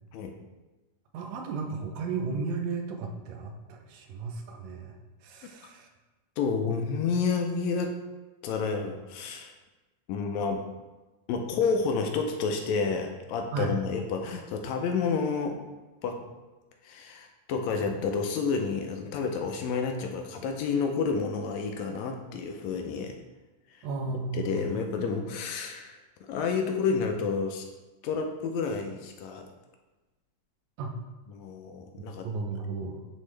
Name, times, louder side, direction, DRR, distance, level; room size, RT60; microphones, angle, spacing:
voice 1, 1.1-4.9 5.2-5.9 13.5-13.7 23.8-24.7 30.8-30.9 32.2-33.0, right 4 dB, 75° right, 2 dB, 1.9 m, -34 dB
voice 2, 6.4-7.9 8.4-9.5 10.1-10.7 11.3-15.7 16.0-16.2 16.8-23.2 24.3-26.0 26.3-27.6 28.0-29.5 31.3-32.3, left 5 dB, 75° left, 3 dB, 1.8 m, -30 dB
9.9 x 3.6 x 3.2 m, 1.1 s
omnidirectional pair, 3.5 m